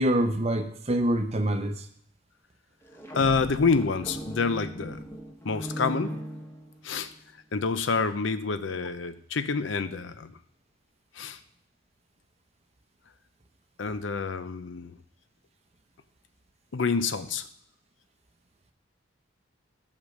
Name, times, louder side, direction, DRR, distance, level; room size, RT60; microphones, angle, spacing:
voice 1, 0.0-1.8, right 1 dB, 35° right, 7 dB, 0.7 m, -25 dB
sound 1, 2.8-7.1, equal, 15° left, 1.0 m, -38 dB
voice 2, 3.1-5.0 5.4-6.2 6.8-7.1 7.5-10.4 11.1-11.4 13.8-15.0 16.7-17.5, left 4 dB, 70° left, 12 dB, 0.6 m, -27 dB
8.2 x 5.1 x 6.4 m, 0.66 s
head